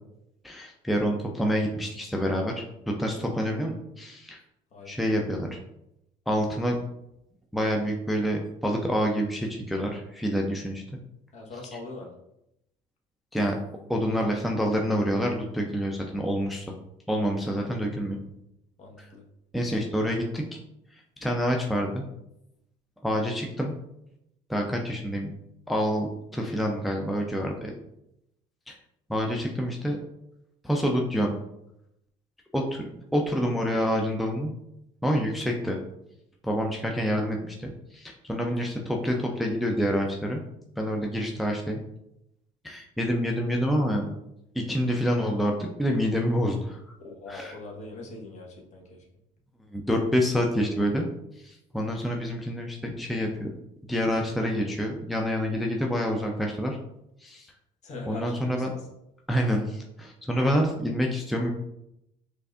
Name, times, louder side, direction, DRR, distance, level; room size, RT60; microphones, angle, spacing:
voice 1, 0.4-4.4 4.9-5.6 6.3-6.8 7.5-10.8 13.3-13.6 13.9-16.7 17.1-18.2 19.5-20.6 21.2-22.0 23.0-23.7 24.5-25.3 25.7-27.7 28.7-28.8 29.1-30.0 30.6-31.3 32.5-34.5 35.0-35.8 36.4-40.4 40.8-41.8 42.6-44.1 44.5-46.8 47.3-47.6 49.7-51.1 51.4-53.5 53.9-56.8 57.2-57.5 58.1-58.7 59.3-61.5, equal, ahead, 1 dB, 0.4 m, -27 dB
voice 2, 11.3-12.1 17.5-17.9 18.8-19.2 38.5-38.8 47.0-49.0 57.8-58.9, left 2 dB, 45° left, -1 dB, 1.1 m, -42 dB
4.6 x 2.6 x 2.4 m, 0.83 s
supercardioid pair, 85°, 16 cm